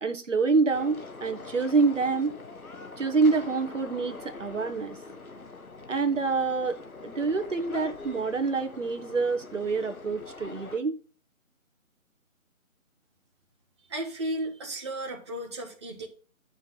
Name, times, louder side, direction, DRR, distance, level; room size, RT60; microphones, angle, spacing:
voice 1, 0.0-2.3 3.0-5.0 5.9-11.0, right 4 dB, 60° right, 1.3 m, -26 dB
sound 1, 0.7-10.8, left 3 dB, 80° left, 1.5 m, -44 dB
voice 2, 13.9-16.1, right 1 dB, 20° right, 1.2 m, -34 dB
10.5 x 5.9 x 4.1 m
figure-of-eight pair, 165°, 42 cm